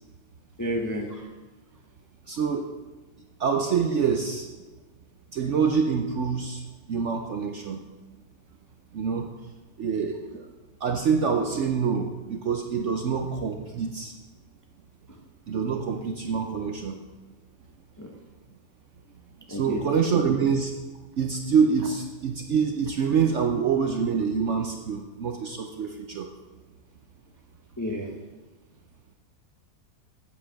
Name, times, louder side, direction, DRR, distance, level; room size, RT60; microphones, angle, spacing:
voice 1, 0.6-1.3 15.1-15.2 18.0-18.1 19.5-19.8 27.8-28.1, equal, 20° left, 1 dB, 0.5 m, -31 dB
voice 2, 2.3-2.7 3.4-4.5 5.3-6.6 6.9-7.8 8.9-9.3 9.8-10.4 10.8-14.1 15.5-17.0 19.5-20.7 21.2-26.3, right 6 dB, 60° right, 4 dB, 0.8 m, -26 dB
8.4 x 7.5 x 5.7 m, 1.2 s
omnidirectional pair, 1.8 m